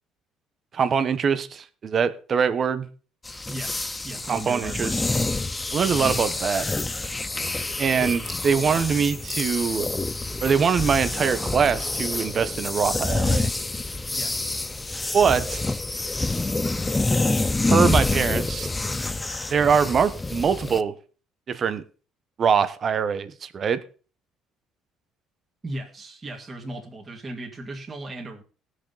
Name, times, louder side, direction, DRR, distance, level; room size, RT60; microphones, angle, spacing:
voice 1, 0.7-2.9 4.3-5.0 5.7-6.7 7.8-9.9 10.4-13.5 15.1-15.6 17.7-18.7 19.5-20.9 21.5-21.8 22.4-23.8, right 6 dB, 40° right, 12 dB, 1.0 m, -23 dB
sound 1, 3.3-20.8, left 2 dB, 15° left, 0.5 m, -27 dB
voice 2, 3.5-4.9 14.1-14.6 25.6-28.4, right 1 dB, 20° right, -1 dB, 2.3 m, -37 dB
19.0 x 6.5 x 4.0 m, 0.38 s
cardioid pair, 125°, 0 cm